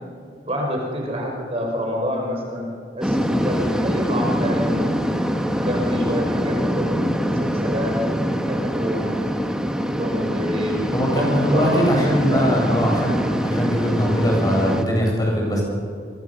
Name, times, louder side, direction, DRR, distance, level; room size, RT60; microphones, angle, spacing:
voice 1, 0.4-2.7 2.9-4.8 5.6-8.0 8.4-9.1 10.0-12.6, equal, 35° right, 0 dB, 5.0 m, -27 dB
sound 1, 3.0-14.8, equal, 5° right, 1.6 m, -24 dB
voice 2, 10.9-15.6, equal, 20° left, -1 dB, 7.8 m, -21 dB
29.0 x 24.0 x 7.0 m, 2.3 s
head